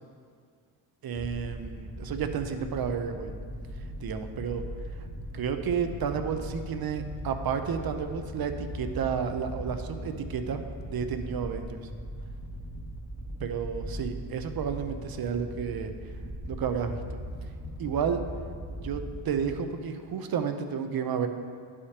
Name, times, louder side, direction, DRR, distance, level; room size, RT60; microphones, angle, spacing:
voice 1, 1.0-3.3 4.0-4.6 5.3-10.6 10.9-11.8 13.4-15.9 16.5-17.2 17.8-18.2 18.7-21.3, right 7 dB, 50° right, 7 dB, 0.7 m, -31 dB
sound 1, 1.1-19.5, right 1 dB, 55° left, 1.6 m, -39 dB
11.5 x 5.0 x 2.9 m, 2.1 s
cardioid pair, 80°, 46 cm